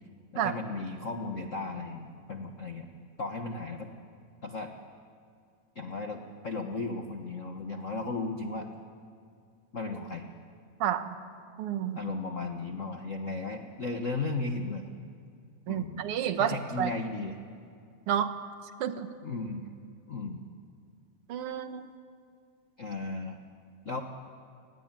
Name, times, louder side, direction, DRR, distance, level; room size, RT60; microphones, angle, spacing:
voice 1, 0.3-2.9 3.2-3.9 4.4-4.7 5.7-8.7 9.7-10.2 11.9-14.9 15.7-16.0 16.3-17.4 19.2-19.6 20.1-20.4 22.8-23.4 23.8-24.0, left 3 dB, 50° left, 4 dB, 0.9 m, -35 dB
voice 2, 10.8-11.1 11.6-12.0 15.7-16.9 18.1-18.3 18.8-19.1 21.3-21.9, right 9 dB, 60° right, 9 dB, 1.8 m, -30 dB
29.5 x 20.5 x 9.1 m, 2.3 s
omnidirectional pair, 3.4 m